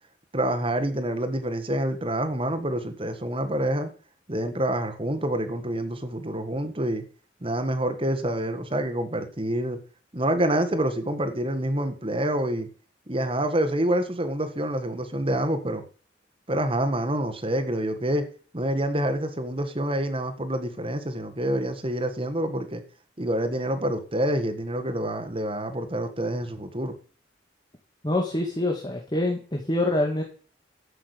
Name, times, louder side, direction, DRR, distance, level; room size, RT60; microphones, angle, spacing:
voice 1, 0.3-3.9 4.3-7.0 7.4-9.8 10.1-12.7 13.1-15.8 16.5-18.2 18.5-22.8 23.2-26.9, right 1 dB, 30° right, 7 dB, 1.7 m, -27 dB
voice 2, 28.0-30.2, left 1 dB, 25° left, 1 dB, 2.0 m, -25 dB
13.0 x 6.1 x 8.3 m, 0.42 s
head